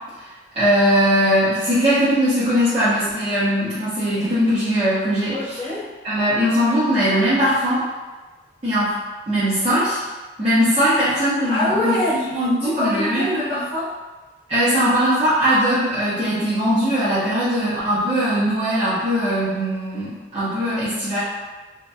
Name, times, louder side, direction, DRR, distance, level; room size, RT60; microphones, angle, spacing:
voice 1, 0.5-5.6 6.0-7.8 8.6-9.0 9.3-10.0 10.4-12.0 12.3-13.3 14.5-21.2, equal, 30° right, -15 dB, 0.6 m, -20 dB
voice 2, 5.3-5.9 11.5-13.9, left 1 dB, 10° left, -16 dB, 0.8 m, -25 dB
2.6 x 2.2 x 2.2 m, 1.2 s
head